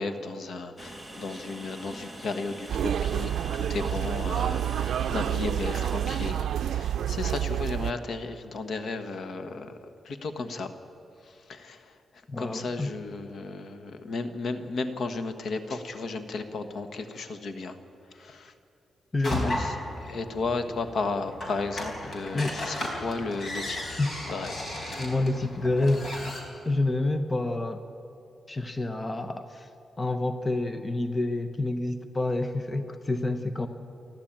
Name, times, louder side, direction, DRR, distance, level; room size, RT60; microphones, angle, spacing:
voice 1, 0.0-9.8 10.0-10.7 11.2-12.0 12.4-17.8 18.1-18.5 19.2-24.0 24.3-24.5, left 3 dB, 60° left, 9 dB, 1.4 m, -34 dB
Train, 0.8-6.3, right 1 dB, 5° left, 1.6 m, -43 dB
sound 1, 2.7-7.9, right 10 dB, 85° right, 0.5 m, -28 dB
voice 2, 12.3-12.9 19.1-19.6 22.3-22.6 24.0-24.1 25.0-26.1 26.6-27.8 28.5-29.7 30.0-33.7, left 2 dB, 20° left, 8 dB, 0.9 m, -28 dB
sound 2, 19.2-26.4, left 1 dB, 40° left, 4.1 m, -35 dB
29.5 x 12.0 x 8.9 m, 2.9 s
wide cardioid pair, 145°, 0 cm